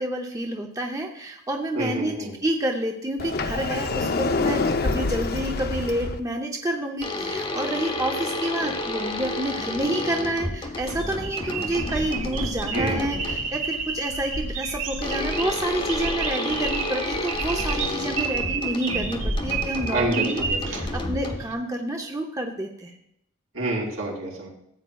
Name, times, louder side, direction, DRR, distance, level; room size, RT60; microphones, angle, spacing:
voice 1, 0.0-20.4 20.7-23.0, right 1 dB, 15° right, 2 dB, 0.6 m, -29 dB
voice 2, 1.7-2.3 12.7-13.3 19.9-20.8 23.5-24.5, right 2 dB, 80° right, -3 dB, 3.8 m, -28 dB
Sliding door, 3.2-6.2, left 3 dB, 45° left, 0.5 m, -26 dB
sound 1, 7.0-13.6 15.0-21.7, left 2 dB, 25° left, 1.0 m, -31 dB
sound 2, 10.6-21.5, right 4 dB, 60° right, 1.2 m, -30 dB
14.0 x 8.7 x 2.3 m, 0.78 s
head